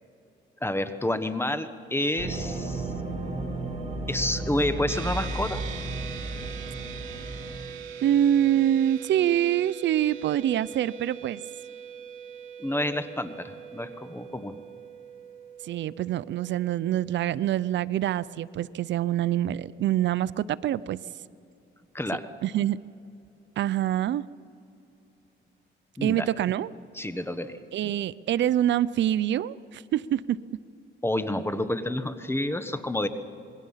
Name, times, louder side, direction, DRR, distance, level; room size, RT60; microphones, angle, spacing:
voice 1, 0.6-2.9 4.1-5.6 12.6-14.6 21.9-22.3 26.0-26.3 26.9-27.6 31.0-33.1, left 1 dB, 10° left, 10 dB, 1.2 m, -29 dB
sound 1, 2.2-7.5, right 2 dB, 30° right, 6.0 m, -33 dB
sound 2, 4.9-18.5, right 7 dB, 90° right, 2.5 m, -42 dB
voice 2, 8.0-11.4 15.6-21.0 22.4-22.8 23.6-24.3 26.0-26.7 27.7-30.4, right 11 dB, 65° right, 19 dB, 0.5 m, -25 dB
27.0 x 21.0 x 5.7 m, 2.7 s
cardioid pair, 90°, 20 cm